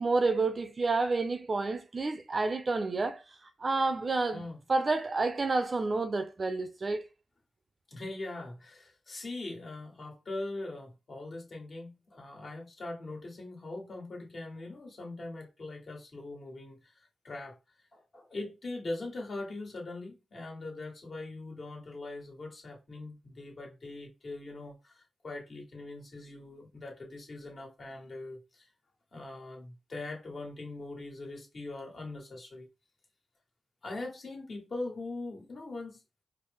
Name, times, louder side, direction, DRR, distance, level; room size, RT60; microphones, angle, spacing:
voice 1, 0.0-3.2 3.6-4.4 4.7-7.0, right 3 dB, 45° right, 0.6 m, -29 dB
voice 2, 7.9-17.6 17.9-28.7 29.1-32.7 33.8-36.2, left 2 dB, 55° left, 1.5 m, -41 dB
4.4 x 2.1 x 3.4 m
cardioid pair, 75°, 0 cm